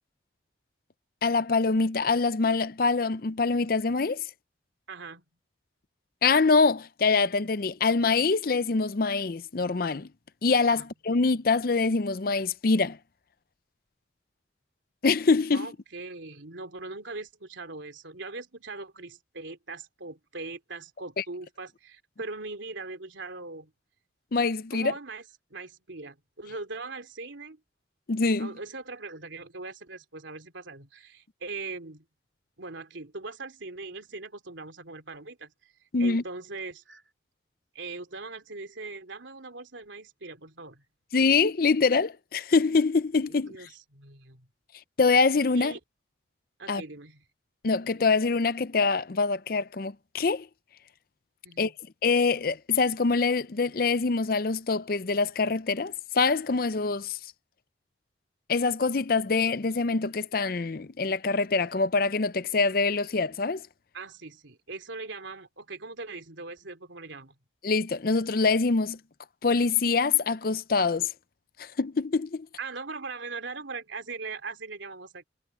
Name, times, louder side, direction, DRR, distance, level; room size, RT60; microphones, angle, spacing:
voice 1, 1.2-4.2 6.2-10.1 10.4-13.0 15.0-15.7 21.2-21.3 24.3-24.9 28.1-28.5 35.9-36.2 41.1-43.7 45.0-45.7 46.7-46.8 47.6-50.5 51.6-51.7 52.0-57.2 58.5-63.6 67.6-69.0 69.4-71.1 71.6-72.5, left 4 dB, 50° left, 0.5 m, -25 dB
voice 2, 4.9-5.2 10.7-10.9 15.5-23.7 24.7-25.2 25.5-27.6 28.4-32.0 32.6-35.5 36.0-37.0 37.7-40.8 43.3-44.5 45.5-45.8 46.6-47.2 51.4-51.7 63.9-67.3 72.6-75.2, right 3 dB, 85° right, 3.0 m, -40 dB
head